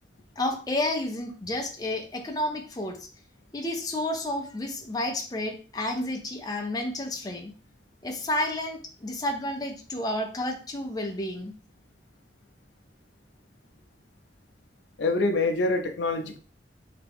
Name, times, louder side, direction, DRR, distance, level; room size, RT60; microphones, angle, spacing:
voice 1, 0.4-3.1 3.5-7.5 8.0-11.5, left 1 dB, 20° left, 3 dB, 0.5 m, -31 dB
voice 2, 15.0-16.4, left 2 dB, 85° left, 6 dB, 0.5 m, -25 dB
3.4 x 2.8 x 3.5 m, 0.40 s
head